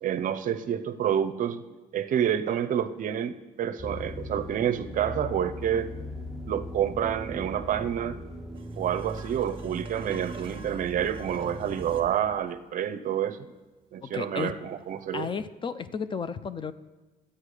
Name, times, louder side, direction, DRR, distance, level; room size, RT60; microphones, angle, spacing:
voice 1, 0.0-1.6 1.9-5.9 6.5-8.2 8.8-13.4 13.9-15.3, right 9 dB, 50° right, 11 dB, 0.6 m, -28 dB
sound 1, 3.8-12.1, left 1 dB, ahead, 0.8 m, -39 dB
sound 2, 8.5-12.1 15.0-15.1, right 4 dB, 30° right, 1.3 m, -48 dB
voice 2, 14.0-14.5 15.1-16.7, left 6 dB, 30° left, 14 dB, 0.4 m, -33 dB
11.5 x 8.5 x 4.9 m, 1.2 s
cardioid pair, 110°, 17 cm